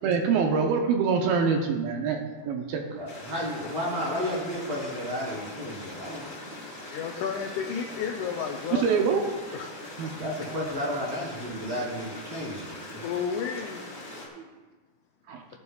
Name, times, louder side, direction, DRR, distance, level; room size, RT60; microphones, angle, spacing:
voice 1, 0.0-3.0 8.7-9.2 10.0-10.1 15.3-15.4, right 5 dB, 80° right, 2 dB, 2.6 m, -25 dB
voice 2, 3.0-6.3 10.2-13.1, equal, 35° right, -6 dB, 4.4 m, -32 dB
Stream, 3.1-14.3, left 1 dB, 20° left, 2.7 m, -41 dB
voice 3, 6.9-8.9 9.5-9.7 13.0-13.8, left 7 dB, 85° left, 2 dB, 1.7 m, -32 dB
15.5 x 10.5 x 2.4 m, 1.3 s
omnidirectional pair, 4.4 m